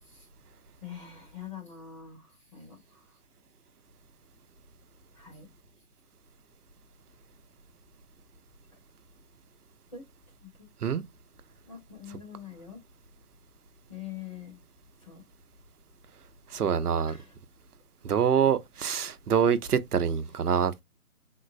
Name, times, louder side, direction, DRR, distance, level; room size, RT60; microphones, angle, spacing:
voice 1, 0.8-2.8 5.1-5.5 9.9-10.0 10.6-10.7 11.6-12.8 13.9-14.6 15.0-15.2 17.0-17.3, left 8 dB, 20° left, 1.1 m, -44 dB
voice 2, 16.5-17.2 18.0-20.8, right 7 dB, 90° right, 0.7 m, -25 dB
3.7 x 2.0 x 2.5 m
hypercardioid pair, 170°, 45 cm